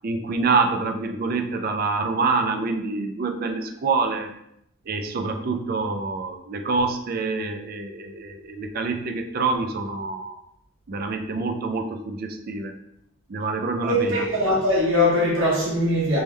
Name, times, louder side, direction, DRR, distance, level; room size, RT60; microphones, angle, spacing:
voice 1, 0.0-4.3 4.9-10.4 10.9-12.7 13.3-14.3, right 4 dB, 45° right, 6 dB, 0.4 m, -26 dB
voice 2, 13.8-16.2, left 1 dB, 70° right, -4 dB, 1.4 m, -21 dB
3.4 x 3.2 x 3.2 m, 0.75 s
head